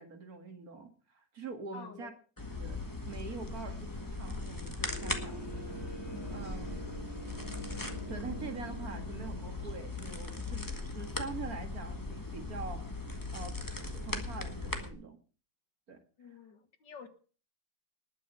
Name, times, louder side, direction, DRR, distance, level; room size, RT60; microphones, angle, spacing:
voice 1, 0.0-2.1 2.5-5.9 6.3-6.8 8.1-13.0 13.3-15.2 15.9-16.0, right 4 dB, 50° right, 6 dB, 2.3 m, -44 dB
voice 2, 1.7-2.1 6.7-7.0 16.2-17.1, left 6 dB, 70° left, 10 dB, 2.1 m, -49 dB
sound 1, 2.4-14.9, left 2 dB, 10° left, 1.5 m, -39 dB
sound 2, 4.9-11.5, equal, 35° left, 4.0 m, -46 dB
19.5 x 6.5 x 6.7 m, 0.39 s
omnidirectional pair, 2.0 m